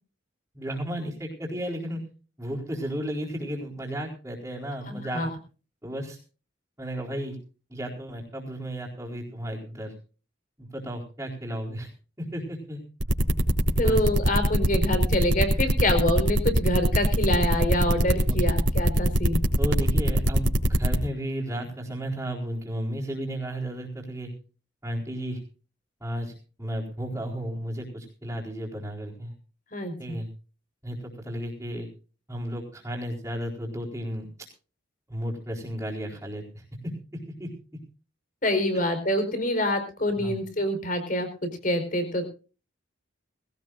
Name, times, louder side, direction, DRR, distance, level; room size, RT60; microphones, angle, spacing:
voice 1, 0.5-2.0 2.4-5.2 5.8-6.2 6.8-7.4 7.7-9.9 10.6-11.9 12.2-12.8 13.8-14.0 18.3-18.6 19.6-24.3 24.8-25.4 26.0-26.3 26.6-29.3 30.0-30.3 30.8-31.9 32.3-34.3 35.1-36.6 37.4-37.5 40.2-40.4, equal, 15° right, -5 dB, 4.3 m, -33 dB
voice 2, 4.9-5.3 13.8-19.4 29.7-30.2 38.4-42.3, left 1 dB, 45° left, 8 dB, 4.6 m, -26 dB
sound 1, 13.0-21.0, equal, 80° right, 3.6 m, -21 dB
21.0 x 17.5 x 2.6 m, 0.37 s
head